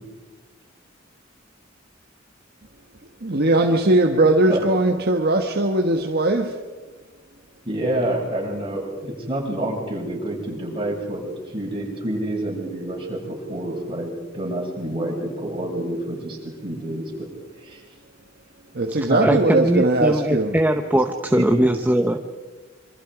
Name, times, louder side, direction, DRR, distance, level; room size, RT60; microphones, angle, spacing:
voice 1, 3.2-6.6 18.7-20.5, right 2 dB, 55° right, 4 dB, 1.4 m, -19 dB
voice 2, 7.6-11.2 11.5-17.3 17.6-17.8 19.1-19.3 21.3-21.6, right 1 dB, 25° right, -3 dB, 7.2 m, -28 dB
voice 3, 18.9-22.4, right 1 dB, 10° right, 5 dB, 0.9 m, -21 dB
27.0 x 25.0 x 5.0 m, 1.3 s
head